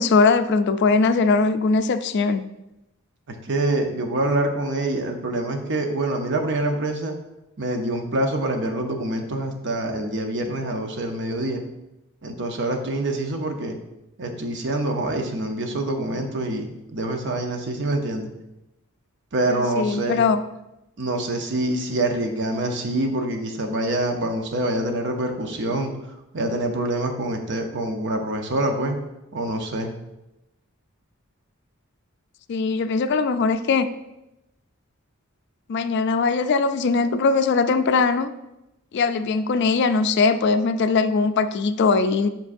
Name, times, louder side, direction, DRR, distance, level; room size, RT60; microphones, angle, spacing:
voice 1, 0.0-2.4 19.5-20.4 32.5-33.9 35.7-38.3 38.9-42.3, left 4 dB, 55° left, 11 dB, 0.3 m, -20 dB
voice 2, 3.4-7.2 7.6-11.6 12.2-13.8 14.2-18.3 19.3-20.2 21.0-25.9 26.3-29.0 29.3-29.9, right 1 dB, 55° right, 4 dB, 0.8 m, -25 dB
7.3 x 5.3 x 2.6 m, 0.92 s
head